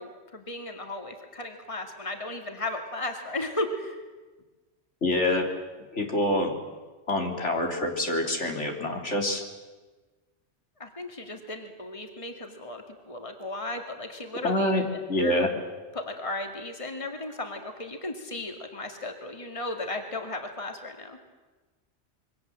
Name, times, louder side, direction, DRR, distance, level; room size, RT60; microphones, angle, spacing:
voice 1, 0.0-4.0 10.8-15.5 15.9-21.2, left 2 dB, 25° left, 4 dB, 2.4 m, -35 dB
voice 2, 5.0-5.5 5.9-6.5 7.1-9.4 14.4-15.5, left 1 dB, 75° left, 2 dB, 3.6 m, -26 dB
27.0 x 23.5 x 7.7 m, 1.3 s
omnidirectional pair, 1.2 m